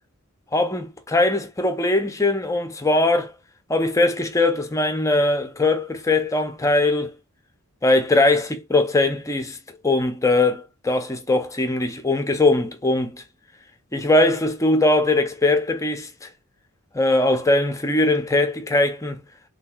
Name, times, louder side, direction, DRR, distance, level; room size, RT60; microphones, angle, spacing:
voice 1, 0.5-3.3 3.7-7.1 7.8-9.6 9.8-13.2 13.9-16.3 16.9-19.2, left 2 dB, 15° left, 0.5 m, -20 dB
3.3 x 2.7 x 2.3 m
head